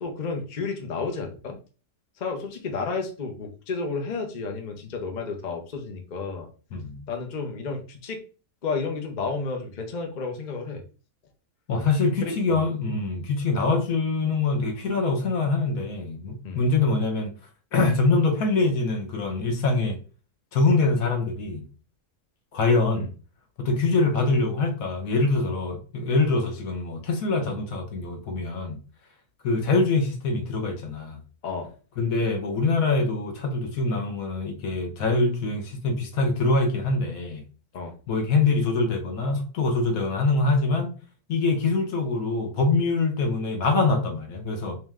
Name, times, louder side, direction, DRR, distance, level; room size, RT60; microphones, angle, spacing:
voice 1, 0.0-1.6 2.2-6.5 7.1-8.2 8.6-10.8 12.2-12.6 16.4-16.6 23.0-23.1 27.4-27.5 31.4-31.7 37.7-37.9, left 4 dB, 45° left, 0.6 m, -31 dB
voice 2, 6.7-7.0 11.7-17.3 17.7-20.0 20.5-21.6 22.5-23.1 23.6-28.8 29.4-31.2 32.0-37.4 38.1-40.9 41.3-44.8, left 3 dB, 65° left, 1.1 m, -24 dB
3.2 x 3.1 x 3.5 m
omnidirectional pair, 1.6 m